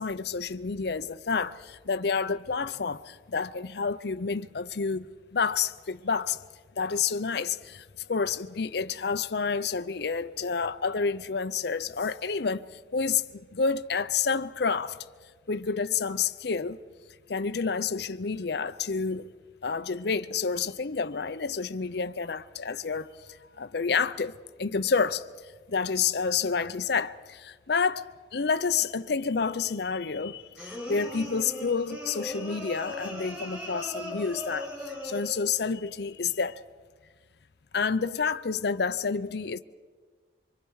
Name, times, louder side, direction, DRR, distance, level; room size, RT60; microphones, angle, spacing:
voice 1, 0.0-6.4 6.8-15.0 15.5-16.8 17.3-19.3 19.6-23.2 23.6-25.2 25.7-28.0 28.3-36.6 37.7-39.6, left 5 dB, 60° left, 0.6 m, -29 dB
sound 1, 30.6-35.4, left 1 dB, 10° right, 6.2 m, -38 dB
24.5 x 24.5 x 4.8 m
head